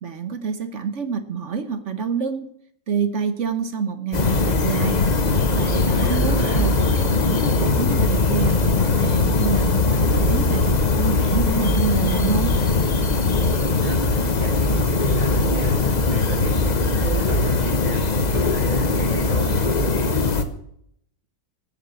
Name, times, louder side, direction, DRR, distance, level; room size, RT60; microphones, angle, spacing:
voice 1, 0.0-2.5 2.9-5.0 5.5-12.5, right 6 dB, 50° right, 11 dB, 1.0 m, -27 dB
sound 1, 4.1-20.4, left 3 dB, 40° left, 0.6 m, -20 dB
voice 2, 5.9-6.7 13.3-20.4, right 1 dB, 90° right, -3 dB, 3.4 m, -33 dB
13.5 x 7.3 x 8.2 m, 0.71 s
omnidirectional pair, 2.1 m